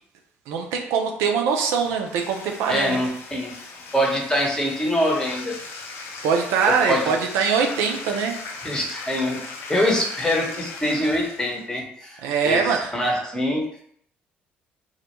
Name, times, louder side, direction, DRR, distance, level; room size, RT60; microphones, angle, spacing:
voice 1, 0.5-3.0 6.2-8.4 12.2-12.9, right 6 dB, 75° right, 3 dB, 0.4 m, -23 dB
Bathtub (filling or washing), 1.7-11.7, left 4 dB, 65° left, 0.6 m, -38 dB
voice 2, 2.7-3.5 3.9-5.6 6.7-7.0 8.6-9.4 9.7-13.7, equal, 15° left, -1 dB, 0.8 m, -24 dB
2.1 x 2.1 x 2.9 m, 0.66 s
hypercardioid pair, 60°, 5 cm